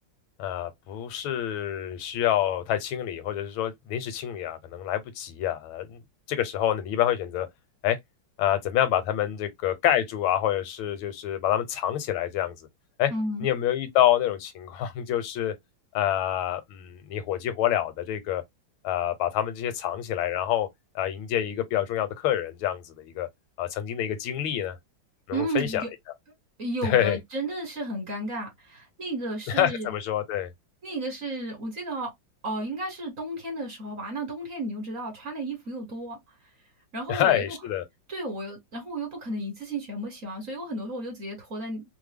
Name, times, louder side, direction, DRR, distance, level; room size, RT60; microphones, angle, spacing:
voice 1, 0.4-6.0 6.3-7.5 7.8-8.0 8.4-12.5 13.0-13.1 13.4-15.5 15.9-18.4 18.8-20.7 20.9-23.3 23.6-24.8 25.3-25.8 26.8-27.2 29.5-30.5 37.1-37.8, left 11 dB, 85° left, 1.5 m, -27 dB
voice 2, 13.1-13.5 25.3-25.9 26.6-29.9 30.8-32.1 32.4-36.5 36.9-37.6 38.1-41.8, right 1 dB, 45° right, 1.4 m, -33 dB
3.3 x 2.0 x 3.4 m
omnidirectional pair, 2.2 m